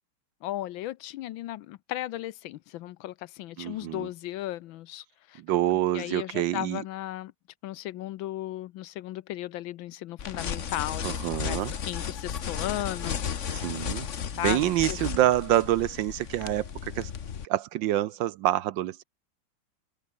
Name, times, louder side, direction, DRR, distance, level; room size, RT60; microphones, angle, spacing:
voice 1, 0.4-5.4 5.9-7.3 7.6-13.2 14.4-15.0, left 14 dB, 75° left, 1.3 m, -36 dB
voice 2, 3.6-4.1 5.4-6.8 11.0-11.7 13.5-17.1 17.4-19.0, right 13 dB, 70° right, 1.2 m, -27 dB
sound 1, 10.2-17.4, left 7 dB, 45° left, 1.2 m, -34 dB
omnidirectional pair, 2.3 m